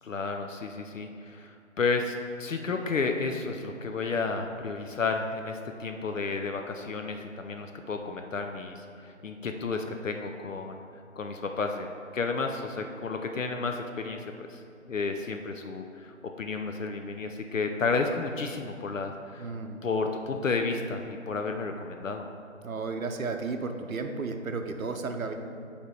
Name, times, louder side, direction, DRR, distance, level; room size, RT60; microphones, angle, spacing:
voice 1, 0.0-10.8 11.2-14.6 14.9-19.5 19.8-22.3, left 4 dB, 70° left, 4 dB, 0.5 m, -32 dB
voice 2, 19.4-19.8 22.6-25.3, right 4 dB, 80° right, 5 dB, 0.7 m, -33 dB
7.3 x 3.4 x 4.7 m, 2.5 s
figure-of-eight pair, 170°, 41 cm